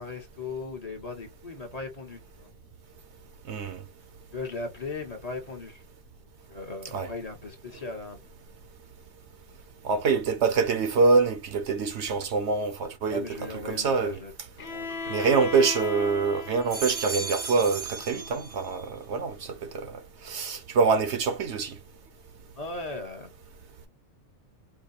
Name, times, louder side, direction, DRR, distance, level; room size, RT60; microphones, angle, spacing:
voice 1, 0.0-2.5 4.3-5.8 6.5-8.2 13.1-14.3 14.6-15.2 15.5-15.6 22.6-23.3, left 3 dB, 35° left, 1.1 m, -38 dB
voice 2, 3.5-3.8 6.9-7.1 9.8-13.2 13.7-14.2 15.1-20.0 20.2-21.7, right 4 dB, 65° right, 1.0 m, -25 dB
Bowed string instrument, 14.6-18.5, left 4 dB, 55° left, 1.1 m, -38 dB
sound 1, 14.9-16.0 16.5-18.9 19.3-19.9, right 4 dB, 35° right, 0.6 m, -38 dB
4.7 x 2.2 x 2.7 m
omnidirectional pair, 1.3 m